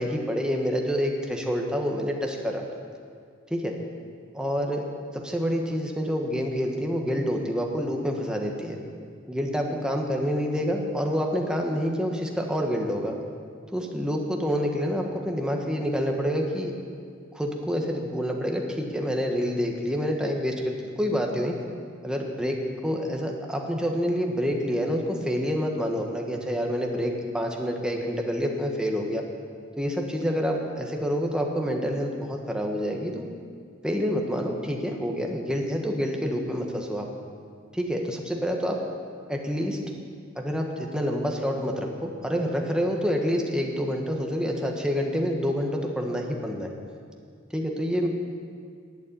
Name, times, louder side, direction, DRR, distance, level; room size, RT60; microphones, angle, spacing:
voice 1, 0.0-2.6 3.5-3.7 4.3-4.9 5.1-8.8 9.3-13.1 13.7-16.7 17.3-21.5 22.0-22.6 22.8-29.2 29.8-33.3 33.8-37.1 37.7-38.8 39.3-39.8 40.3-46.7 47.5-48.1, equal, 5° right, 1 dB, 1.3 m, -27 dB
11.5 x 8.7 x 8.6 m, 2.2 s
head